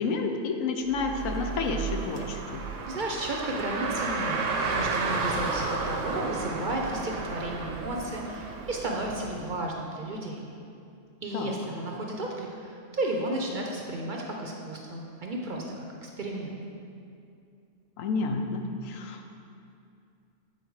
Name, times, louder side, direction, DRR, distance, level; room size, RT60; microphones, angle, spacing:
voice 1, 0.0-2.6 11.3-11.6 18.0-19.3, left 4 dB, 90° left, 4 dB, 1.0 m, -30 dB
Car, 0.9-9.5, right 4 dB, 75° right, 1.0 m, -32 dB
voice 2, 2.9-4.4 4.6-10.4 11.2-16.6, right 1 dB, 50° right, 0 dB, 0.7 m, -33 dB
8.3 x 4.2 x 4.7 m, 2.5 s
omnidirectional pair, 1.3 m